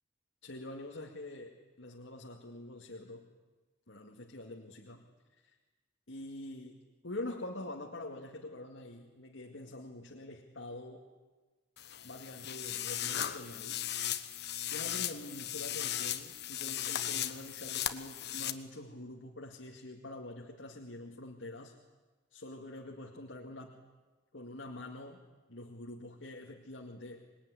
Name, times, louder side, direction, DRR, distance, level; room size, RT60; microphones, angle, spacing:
voice 1, 0.4-3.3 3.9-5.0 5.4-5.6 6.1-11.1 12.0-13.9 14.7-21.7 22.3-23.8 24.3-27.3, left 1 dB, 80° left, 0 dB, 2.2 m, -45 dB
sound 1, 11.8-18.5, left 11 dB, 60° left, 1.3 m, -37 dB
26.5 x 21.5 x 9.8 m, 1.3 s
head